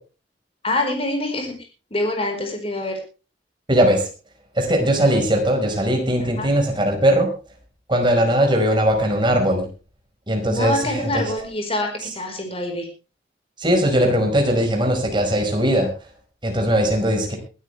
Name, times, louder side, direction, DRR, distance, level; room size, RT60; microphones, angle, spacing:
voice 1, 0.6-1.5 1.9-3.0 6.4-6.5 10.4-12.9, left 1 dB, 35° left, 3 dB, 4.7 m, -25 dB
voice 2, 3.7-4.1 4.5-7.3 7.9-9.7 10.3-11.2 12.0-12.2 13.6-15.9 16.4-17.4, equal, 25° right, 3 dB, 5.0 m, -19 dB
22.0 x 13.0 x 3.4 m, 0.33 s
head